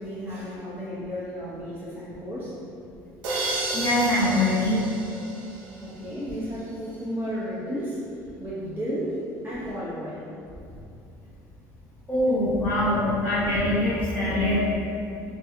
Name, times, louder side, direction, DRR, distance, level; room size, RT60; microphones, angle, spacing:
voice 1, 0.0-2.5 5.8-8.0 8.4-10.2, equal, 25° right, -10 dB, 0.7 m, -33 dB
sound 1, 3.2-6.1, right 2 dB, 70° right, 0.5 m, -32 dB
voice 2, 3.7-4.8 12.1-14.7, left 1 dB, 25° left, -12 dB, 1.4 m, -23 dB
2.7 x 2.2 x 2.6 m, 2.5 s
cardioid pair, 120°, 8 cm